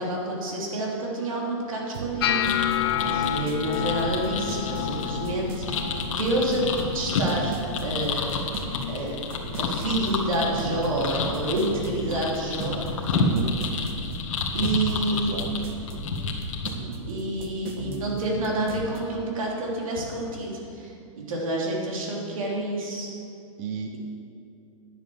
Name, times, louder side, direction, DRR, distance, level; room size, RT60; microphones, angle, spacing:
voice 1, 0.0-2.7 3.0-6.7 6.9-8.4 8.9-9.2 9.6-13.2 14.5-15.3 17.1-23.1, right 1 dB, 85° right, -2 dB, 3.3 m, -28 dB
sound 1, 1.9-19.0, right 4 dB, 45° right, 1.2 m, -37 dB
sound 2, 2.2-8.3 8.6-9.1 9.4-10.0 10.6-10.8 12.6-12.7, left 10 dB, 50° left, 0.5 m, -31 dB
sound 3, 2.4-16.7, left 4 dB, 70° left, 1.7 m, -30 dB
voice 2, 13.1-13.5 15.1-15.5 23.6-24.0, right 6 dB, 30° right, 5 dB, 0.5 m, -32 dB
10.5 x 7.9 x 7.1 m, 2.6 s
supercardioid pair, 170°, 17 cm